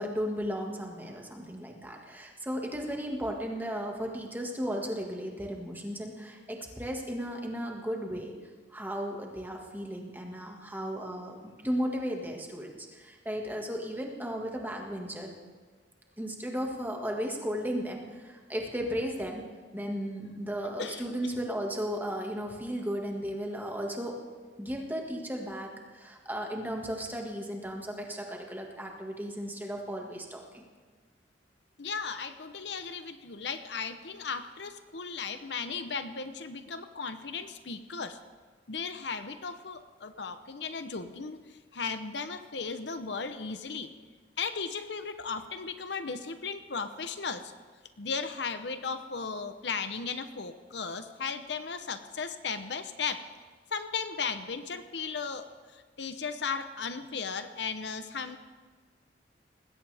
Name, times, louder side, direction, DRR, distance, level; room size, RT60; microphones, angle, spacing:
voice 1, 0.0-8.3 8.7-15.3 16.2-19.4 19.7-24.2 24.6-30.6, equal, 10° right, 1 dB, 1.8 m, -35 dB
voice 2, 31.8-38.2 38.7-43.9 44.4-47.5 48.0-53.2 53.7-55.4 55.7-58.4, left 5 dB, 70° left, 10 dB, 0.8 m, -36 dB
20.0 x 16.5 x 3.5 m, 1.5 s
head